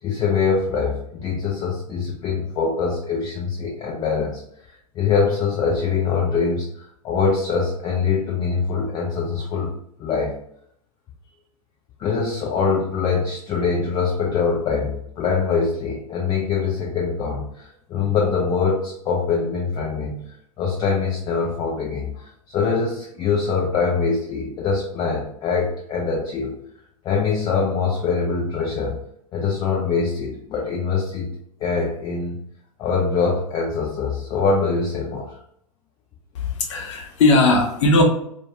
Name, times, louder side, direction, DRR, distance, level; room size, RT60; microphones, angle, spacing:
voice 1, 0.0-4.4 4.9-9.7 10.0-10.4 12.0-26.6 27.0-29.0 29.3-31.3 31.6-32.4 32.8-35.3, left 5 dB, 20° left, -2 dB, 0.4 m, -23 dB
voice 2, 36.3-38.0, left 2 dB, 55° left, 2 dB, 0.7 m, -18 dB
2.2 x 2.2 x 2.8 m, 0.71 s
figure-of-eight pair, 100°, 19 cm